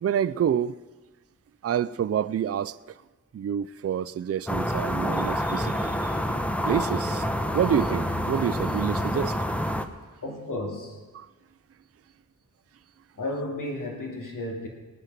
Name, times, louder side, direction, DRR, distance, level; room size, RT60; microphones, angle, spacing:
voice 1, 0.0-0.8 1.6-2.8 3.3-7.3 7.5-9.4 9.6-9.7 11.1-11.3, right 9 dB, 45° right, 0.4 m, -28 dB
sound 1, 4.5-9.9, equal, 5° left, 1.0 m, -27 dB
voice 2, 10.2-11.0 13.2-14.7, left 1 dB, 75° left, 2.6 m, -33 dB
19.0 x 9.6 x 6.7 m
wide cardioid pair, 70°, 32 cm